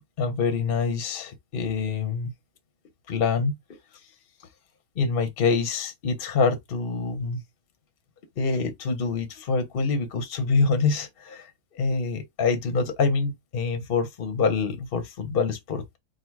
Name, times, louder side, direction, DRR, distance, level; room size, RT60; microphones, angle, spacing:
voice 1, 0.2-2.3 3.1-3.6 5.0-7.4 8.4-11.5 11.7-15.8, left 4 dB, 45° left, 0.8 m, -25 dB
3.9 x 2.1 x 4.5 m
omnidirectional pair, 2.0 m